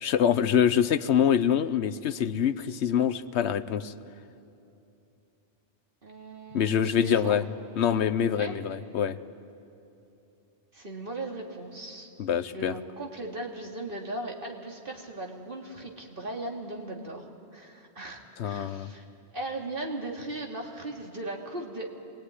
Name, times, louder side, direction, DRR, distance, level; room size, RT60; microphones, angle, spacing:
voice 1, 0.0-3.9 6.5-7.4 7.8-9.2 12.2-12.7 18.4-18.9, left 8 dB, 90° left, 13 dB, 1.1 m, -25 dB
voice 2, 6.0-7.4 8.3-8.5 8.8-8.9 10.7-12.1 12.5-17.2 17.5-19.0 19.3-21.9, right 2 dB, 55° right, 0 dB, 2.8 m, -38 dB
28.0 x 21.0 x 9.8 m, 2.8 s
omnidirectional pair, 1.1 m